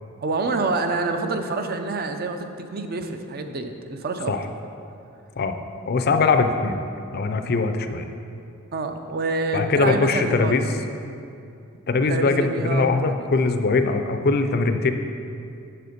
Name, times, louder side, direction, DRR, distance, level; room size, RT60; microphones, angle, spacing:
voice 1, 0.2-4.4 8.7-10.6 12.1-13.3, right 3 dB, 45° right, 6 dB, 0.6 m, -27 dB
voice 2, 5.9-6.8 7.1-8.1 9.5-10.6 11.9-14.9, left 3 dB, 50° left, 7 dB, 0.5 m, -21 dB
7.0 x 6.7 x 5.1 m, 2.6 s
head